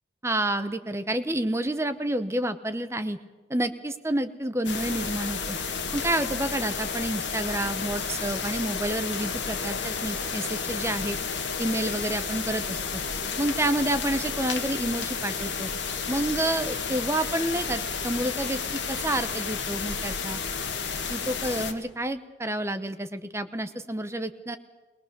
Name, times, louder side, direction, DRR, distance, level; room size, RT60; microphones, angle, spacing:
voice 1, 0.2-3.2 3.5-5.6 5.9-11.2 11.6-13.0 13.4-15.7 16.1-20.4 21.1-24.6, right 1 dB, 15° right, 10 dB, 0.9 m, -29 dB
sound 1, 4.6-21.7, left 5 dB, 70° left, 1.8 m, -31 dB
22.0 x 19.5 x 6.8 m, 1.2 s
head